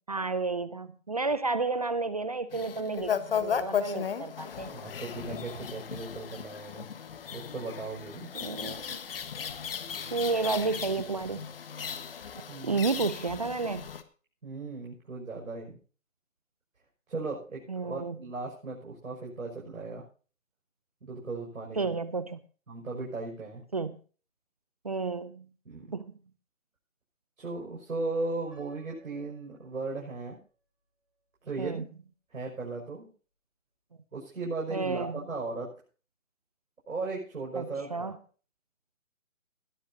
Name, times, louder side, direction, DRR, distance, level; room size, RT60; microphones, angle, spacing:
voice 1, 0.1-4.7 8.3-9.0 10.1-11.5 12.6-13.9 17.7-18.2 21.8-22.4 23.7-24.0 24.8-25.5 25.9-26.1 31.6-31.8 34.7-35.2 37.6-38.2, right 3 dB, 30° right, 15 dB, 0.6 m, -31 dB
sound 1, 2.5-14.0, left 7 dB, 40° left, 1.4 m, -36 dB
voice 2, 4.7-6.9 7.3-8.3 12.5-12.9 14.4-15.8 17.1-20.0 21.0-21.9 22.7-23.6 25.6-25.9 27.4-30.4 31.4-31.9 32.3-33.1 34.1-35.7 36.9-38.1, right 3 dB, 70° right, -2 dB, 6.2 m, -37 dB
Piano, 28.5-30.5, right 3 dB, ahead, 4.7 m, -57 dB
20.0 x 12.5 x 2.8 m, 0.38 s
figure-of-eight pair, 155°, 41 cm